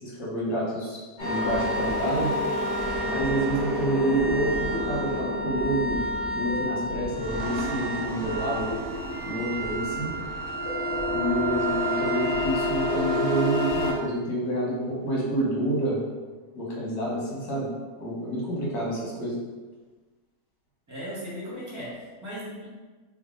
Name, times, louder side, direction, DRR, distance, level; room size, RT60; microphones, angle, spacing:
voice 1, 0.0-2.3 3.0-6.0 6.3-8.7 9.2-10.1 11.1-16.0 16.5-17.7 18.0-19.4, right 1 dB, 80° left, -5 dB, 1.6 m, -28 dB
sound 1, 1.2-13.9, equal, 60° left, 1.2 m, -29 dB
sound 2, 7.0-14.4, right 3 dB, 80° right, 1.1 m, -41 dB
voice 2, 20.9-22.7, equal, 15° right, -7 dB, 0.8 m, -37 dB
3.3 x 2.2 x 3.7 m, 1.3 s
omnidirectional pair, 1.6 m